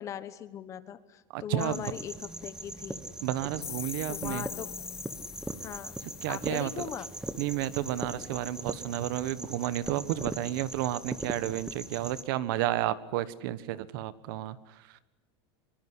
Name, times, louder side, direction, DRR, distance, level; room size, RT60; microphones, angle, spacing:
voice 1, 0.0-3.0 4.1-4.7 5.6-6.0 6.3-7.1, left 9 dB, 25° left, 14 dB, 1.1 m, -39 dB
voice 2, 1.3-1.8 3.2-4.4 6.2-6.9 7.4-15.0, right 13 dB, 60° right, 16 dB, 1.4 m, -32 dB
sound 1, 1.6-12.2, right 2 dB, 5° right, 1.2 m, -40 dB
sound 2, 3.6-8.3, left 17 dB, 75° left, 4.0 m, -45 dB
25.0 x 23.5 x 9.9 m, 0.98 s
supercardioid pair, 180°, 13 cm